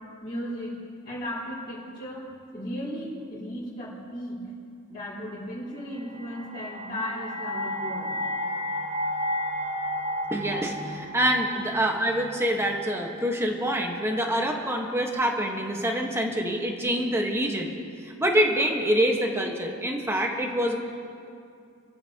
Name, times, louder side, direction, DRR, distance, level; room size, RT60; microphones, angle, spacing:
voice 1, 0.2-0.8 1.0-4.5 4.9-8.2, equal, 25° left, -12 dB, 4.3 m, -36 dB
sound 1, 6.0-13.1, equal, 30° right, 1.0 m, -33 dB
voice 2, 10.3-17.7 18.0-20.7, equal, 10° right, 1 dB, 1.4 m, -26 dB
28.5 x 14.5 x 3.0 m, 2.4 s
head